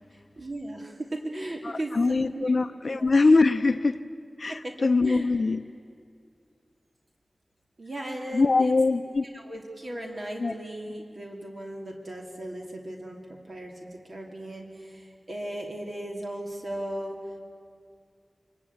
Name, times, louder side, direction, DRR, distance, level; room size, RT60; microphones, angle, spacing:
voice 1, 0.4-2.5 2.9-3.1 4.5-4.7 5.0-5.3 7.8-8.7 9.3-17.2, right 1 dB, 55° right, 0 dB, 2.7 m, -37 dB
voice 2, 1.6-4.0 4.4-5.6 8.3-9.2 10.4-10.5, left 3 dB, 60° left, 9 dB, 0.6 m, -23 dB
24.0 x 21.5 x 8.6 m, 2.3 s
wide cardioid pair, 75°, 0 cm